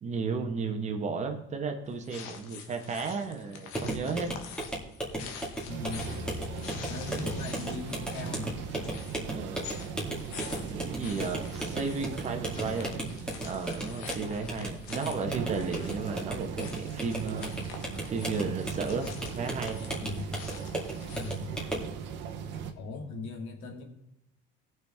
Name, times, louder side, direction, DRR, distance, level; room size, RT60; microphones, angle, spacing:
voice 1, 0.0-4.3 9.3-9.7 10.7-13.0 13.4-17.5 18.1-19.8, right 4 dB, 35° right, 5 dB, 1.4 m, -34 dB
sound 1, 1.9-21.5, left 7 dB, 90° left, 1.5 m, -47 dB
sound 2, 3.7-21.9, right 1 dB, 5° left, 2.3 m, -37 dB
voice 2, 5.7-6.1 6.9-8.7 19.9-20.3 21.1-21.5 22.8-23.8, left 3 dB, 70° left, 2 dB, 2.3 m, -39 dB
sound 3, 5.7-22.7, right 6 dB, 65° right, 1.2 m, -39 dB
18.5 x 6.2 x 3.7 m, 0.82 s
cardioid pair, 135°, 21 cm